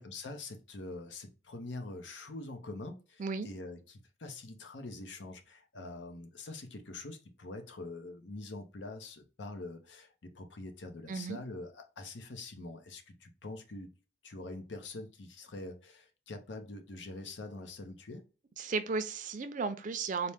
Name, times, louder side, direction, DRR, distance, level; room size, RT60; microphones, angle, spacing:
voice 1, 0.0-13.9 14.2-18.2, left 2 dB, 75° left, 0.7 m, -44 dB
voice 2, 11.1-11.4 18.6-20.3, right 4 dB, 45° right, 0.4 m, -34 dB
4.2 x 2.1 x 3.3 m
head